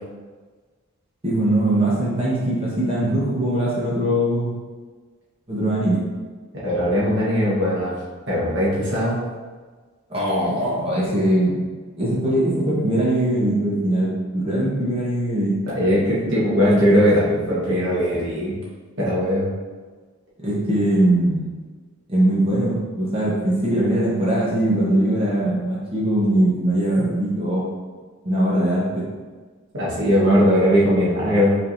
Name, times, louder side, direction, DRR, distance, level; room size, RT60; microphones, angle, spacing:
voice 1, 1.2-4.5 5.5-6.0 10.1-11.5 12.0-15.5 20.4-21.5 22.1-27.7 28.2-29.0, right 1 dB, 30° right, -7 dB, 1.0 m, -21 dB
voice 2, 6.6-7.9 8.3-9.2 15.7-18.6 19.0-19.5 29.7-31.6, equal, 60° right, -8 dB, 1.3 m, -19 dB
5.3 x 3.5 x 2.6 m, 1.4 s
head